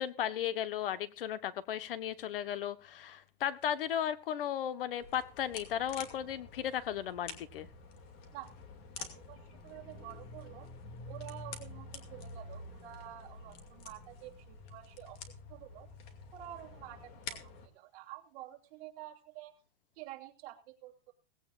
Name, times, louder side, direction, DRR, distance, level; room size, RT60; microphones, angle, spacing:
voice 1, 0.0-7.7, left 10 dB, 60° left, 13 dB, 1.3 m, -35 dB
sound 1, 5.0-17.7, left 4 dB, 30° left, 2.4 m, -48 dB
voice 2, 9.0-10.7 11.0-15.9 16.3-19.5 19.9-21.1, right 14 dB, 40° right, 1 dB, 2.9 m, -49 dB
18.0 x 16.5 x 2.5 m, 0.33 s
hypercardioid pair, 160°, 31 cm